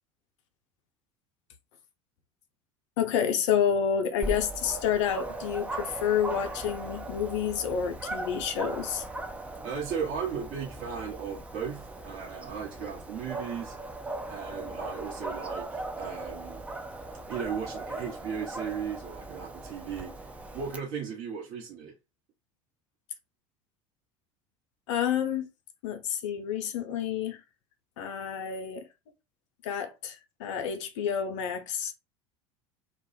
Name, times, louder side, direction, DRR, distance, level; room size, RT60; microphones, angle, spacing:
voice 1, 3.0-9.0 24.9-25.5 25.8-27.4 28.0-28.9 29.6-31.9, left 8 dB, 60° left, 0.5 m, -29 dB
Dog, 4.2-20.8, right 2 dB, 10° right, 0.4 m, -39 dB
voice 2, 9.6-13.8 14.3-16.6 17.3-20.3 20.5-21.9, right 7 dB, 50° right, 0.9 m, -36 dB
2.2 x 2.0 x 2.9 m
figure-of-eight pair, 75°, 17 cm